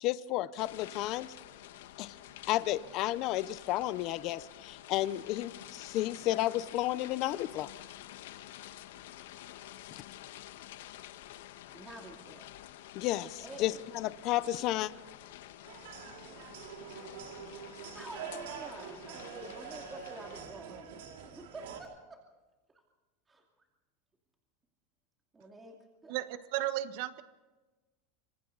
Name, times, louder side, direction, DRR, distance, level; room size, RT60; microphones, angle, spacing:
voice 1, 0.0-1.3 2.0-2.1 2.5-7.7 12.9-14.9, left 15 dB, 40° left, 15 dB, 0.8 m, -32 dB
sound 1, 0.6-20.4, left 13 dB, 75° left, 1.5 m, -50 dB
voice 2, 11.7-12.5 13.4-13.9 17.9-21.0 21.3-22.2 23.3-23.4 25.3-25.8 26.0-26.1, right 2 dB, 10° right, 1 dB, 2.5 m, -48 dB
sound 2, 15.7-21.8, right 8 dB, 80° right, 5.2 m, -45 dB
voice 3, 26.1-27.2, right 14 dB, 55° right, 11 dB, 1.4 m, -34 dB
27.0 x 26.0 x 4.1 m, 1.2 s
supercardioid pair, 165°, 0 cm